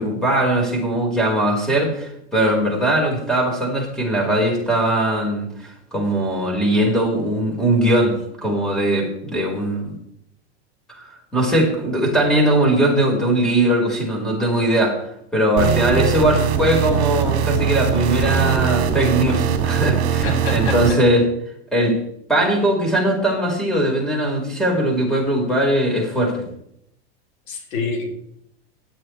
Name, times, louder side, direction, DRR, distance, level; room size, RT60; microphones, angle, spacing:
voice 1, 0.0-10.0 11.0-15.0 15.3-21.3 21.7-22.0 22.3-26.4, right 1 dB, ahead, -1 dB, 4.9 m, -20 dB
sound 1, 15.6-20.9, right 8 dB, 45° right, 2.2 m, -21 dB
voice 2, 20.2-21.0 27.5-28.1, left 4 dB, 75° left, 0 dB, 4.5 m, -26 dB
17.0 x 12.0 x 3.4 m, 0.74 s
supercardioid pair, 130°, 33 cm